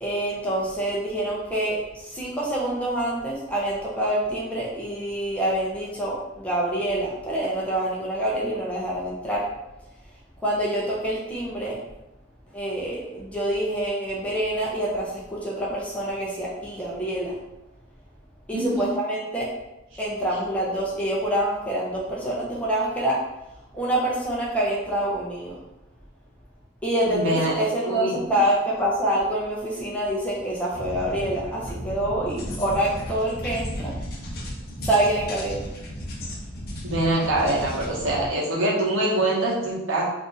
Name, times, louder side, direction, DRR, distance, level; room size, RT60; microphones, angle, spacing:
voice 1, 0.0-9.5 10.4-11.8 12.5-17.4 18.5-19.5 20.0-23.2 23.7-25.6 26.8-33.9 34.8-35.7, right 1 dB, 5° left, -5 dB, 0.5 m, -26 dB
voice 2, 18.5-18.9 27.1-28.1 36.8-40.0, right 1 dB, 75° right, -5 dB, 0.9 m, -24 dB
sound 1, 30.7-38.3, equal, 50° left, 0.6 m, -34 dB
2.5 x 2.4 x 3.8 m, 0.95 s
head